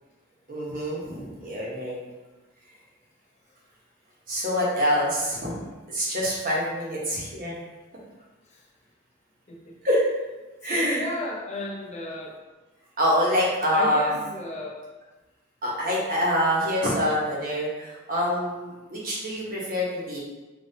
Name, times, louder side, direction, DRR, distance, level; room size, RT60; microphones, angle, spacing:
voice 1, 0.5-2.0 4.3-5.5 5.9-7.5 9.8-10.0 10.6-11.0 13.0-14.1 15.6-20.2, equal, 40° right, -5 dB, 1.2 m, -25 dB
voice 2, 10.7-12.4 13.7-14.8, left 2 dB, 35° left, -3 dB, 0.7 m, -34 dB
5.2 x 3.1 x 2.8 m, 1.2 s
head